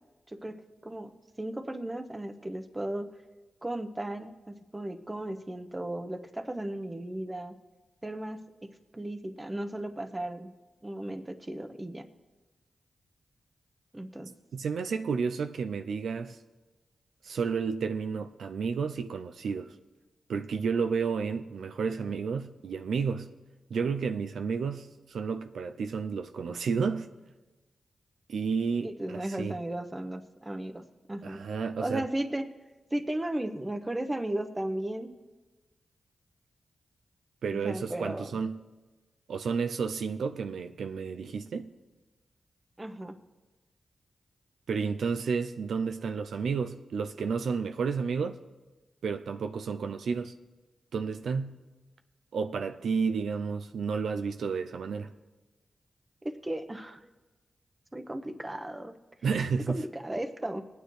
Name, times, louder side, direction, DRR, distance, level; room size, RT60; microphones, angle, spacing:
voice 1, 1.4-3.1 3.6-7.5 8.0-8.4 8.9-10.5 10.8-12.0 13.9-14.3 28.8-30.8 31.1-31.4 31.8-32.5 32.9-35.1 37.5-38.3 42.8-43.1 56.2-57.0 57.9-59.0 59.7-60.6, right 1 dB, 20° right, 1.0 m, -35 dB
voice 2, 14.5-16.4 17.2-19.7 20.3-23.3 23.7-27.1 28.3-29.6 31.2-32.1 37.4-38.6 39.3-41.7 44.7-48.4 49.0-50.3 50.9-51.6 52.3-55.1 59.2-59.8, right 5 dB, 85° right, 0.5 m, -31 dB
20.0 x 9.3 x 3.3 m
cardioid pair, 55°, 0 cm